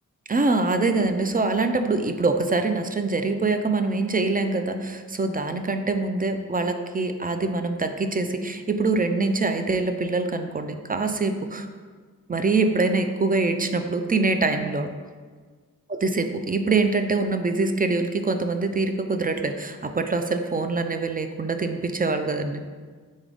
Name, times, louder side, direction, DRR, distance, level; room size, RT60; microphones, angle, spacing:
voice 1, 0.3-11.7 12.3-14.9 15.9-22.6, right 3 dB, 25° right, 7 dB, 0.3 m, -24 dB
4.0 x 3.4 x 3.8 m, 1.5 s
cardioid pair, 40°, 34 cm